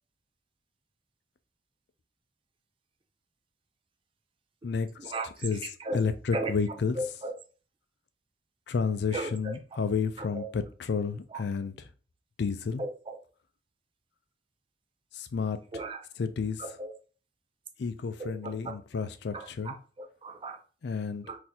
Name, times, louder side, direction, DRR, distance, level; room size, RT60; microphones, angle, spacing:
voice 1, 4.6-5.1 5.4-5.6 5.9-7.0 8.7-11.9 12.4-12.8 15.1-15.6 16.2-16.6 17.8-19.8 20.8-21.3, left 5 dB, 65° left, 0.4 m, -31 dB
voice 2, 7.0-7.3 9.1-9.5 10.3-10.5 11.3-11.4 12.8-13.2 15.7-16.0 16.6-16.9 18.2-18.5 18.9-19.0 19.3-19.7 20.2-20.6 21.3-21.4, right 2 dB, 30° right, 0.4 m, -35 dB
4.0 x 2.6 x 2.8 m
head